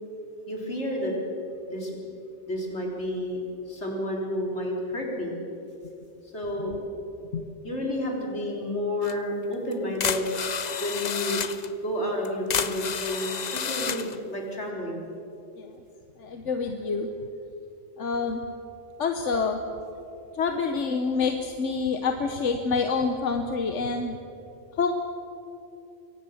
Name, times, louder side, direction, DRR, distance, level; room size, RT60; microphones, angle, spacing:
voice 1, 0.5-1.2 1.6-1.9 2.5-3.4 3.7-5.3 6.3-6.8 7.6-10.3 10.8-11.5 11.8-15.1, left 1 dB, 70° left, -1 dB, 4.2 m, -30 dB
sound 1, 9.0-9.2 9.7-9.8 10.0-11.7 12.2-14.2, left 7 dB, 45° left, 0.7 m, -30 dB
voice 2, 16.2-17.1 18.0-18.4 19.0-19.6 20.4-24.2 24.8-24.9, left 5 dB, 85° left, 6 dB, 1.4 m, -27 dB
23.0 x 17.5 x 7.2 m, 2.7 s
omnidirectional pair, 1.2 m